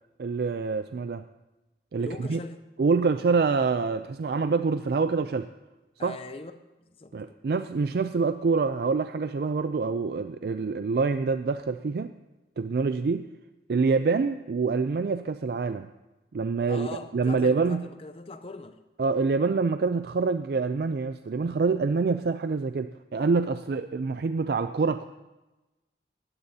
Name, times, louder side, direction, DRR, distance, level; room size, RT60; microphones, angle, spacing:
voice 1, 0.2-1.2 1.9-2.4 2.8-5.5 6.0-6.2 7.1-12.1 12.6-13.3 13.7-15.9 16.3-17.9 19.0-25.1, right 4 dB, 60° right, 10 dB, 0.4 m, -26 dB
voice 2, 2.0-2.6 6.0-6.5 6.8-7.4 16.7-18.8, left 2 dB, 30° left, 10 dB, 0.6 m, -41 dB
18.5 x 14.0 x 2.8 m, 1.1 s
head